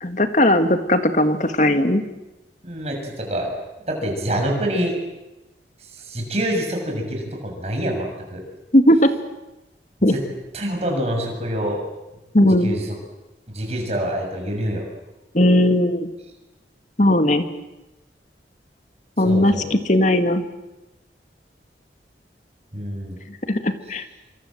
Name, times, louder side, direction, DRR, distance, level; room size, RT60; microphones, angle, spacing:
voice 1, 0.0-2.0 8.7-9.1 10.0-10.2 12.3-12.7 15.3-16.1 17.0-17.5 19.2-20.4 23.3-24.0, left 1 dB, 45° left, 8 dB, 1.9 m, -17 dB
voice 2, 2.6-3.5 3.9-5.0 5.8-8.4 10.1-10.2 10.5-11.8 12.6-12.9 13.5-14.8 19.2-19.7 22.7-23.2, equal, 35° right, 1 dB, 6.9 m, -26 dB
26.5 x 25.0 x 7.8 m, 1.0 s
head